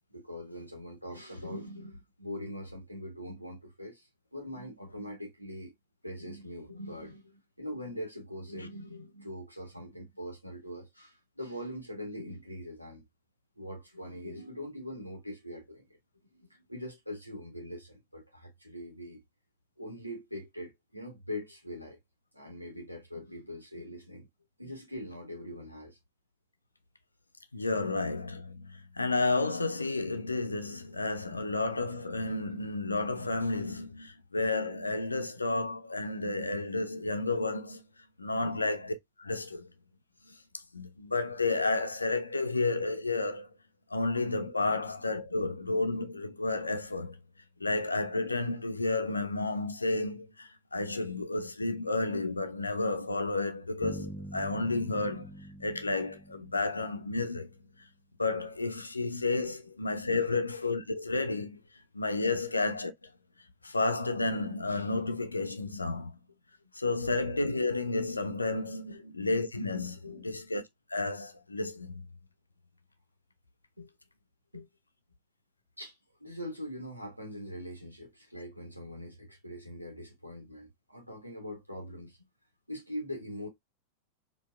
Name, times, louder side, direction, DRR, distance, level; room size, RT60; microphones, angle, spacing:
voice 1, 0.1-5.7 6.0-13.0 13.6-15.8 16.3-19.2 19.8-22.0 22.3-24.3 24.6-26.0 31.2-31.5 38.4-38.7 44.7-44.8 45.3-45.5 47.6-47.8 59.4-59.5 60.1-60.3 62.3-62.4 68.9-69.1 70.0-70.3 73.8-73.9 74.5-74.7 75.8-75.9 76.2-82.2 82.7-83.5, equal, 90° right, 1.4 m, -42 dB
voice 2, 27.5-37.8 38.2-39.7 40.3-40.4 40.7-43.5 43.9-47.2 47.6-55.3 55.6-57.5 58.2-61.6 61.9-62.9 63.6-66.1 66.7-70.6 70.9-72.0, left 3 dB, 80° left, 0.5 m, -31 dB
sound 1, 53.8-57.5, right 1 dB, ahead, 0.8 m, -45 dB
4.4 x 2.8 x 2.2 m
figure-of-eight pair, 90°, 0 cm